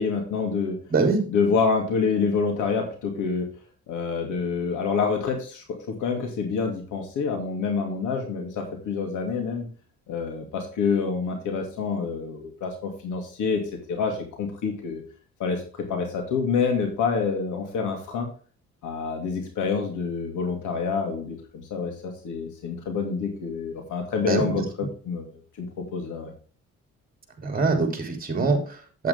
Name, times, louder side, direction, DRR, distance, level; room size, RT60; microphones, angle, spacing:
voice 1, 0.0-0.8 1.3-3.5 3.9-9.7 10.1-13.6 13.9-15.0 15.4-15.6 15.9-18.3 18.8-21.4 21.7-26.3, left 5 dB, 80° left, 3 dB, 2.6 m, -27 dB
voice 2, 0.9-1.2 24.2-24.6 27.4-29.1, right 4 dB, 30° right, 4 dB, 3.1 m, -24 dB
8.5 x 8.3 x 3.6 m, 0.39 s
cardioid pair, 90°, 30 cm